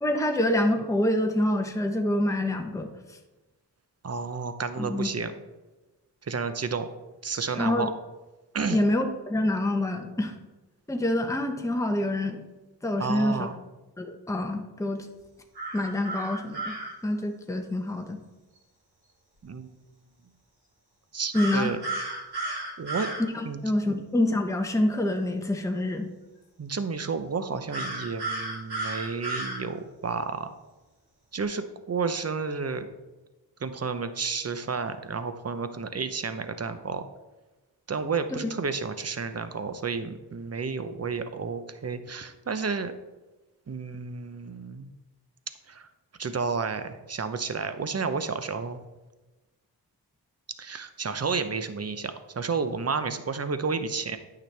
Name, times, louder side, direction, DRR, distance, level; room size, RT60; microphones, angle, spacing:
voice 1, 0.0-2.9 4.8-5.1 7.5-7.9 8.7-10.3 10.9-12.4 12.8-13.5 14.0-15.1 15.7-16.7 17.0-18.2 21.3-21.7 23.3-26.1, left 1 dB, 5° left, 4 dB, 0.9 m, -26 dB
voice 2, 4.0-5.3 6.2-6.9 7.2-7.9 8.5-8.8 13.0-13.6 19.4-19.7 21.1-21.8 22.8-23.1 23.4-23.6 23.9-24.0 26.6-30.6 31.3-32.9 33.6-37.0 37.9-42.9 43.7-44.9 45.7-45.9 46.2-48.8 50.6-54.2, right 5 dB, 35° right, 10 dB, 0.8 m, -31 dB
sound 1, 15.6-16.9 21.3-23.2 27.7-29.6, right 2 dB, 65° right, 2.8 m, -33 dB
9.0 x 6.1 x 3.4 m, 1.1 s
cardioid pair, 55°, 42 cm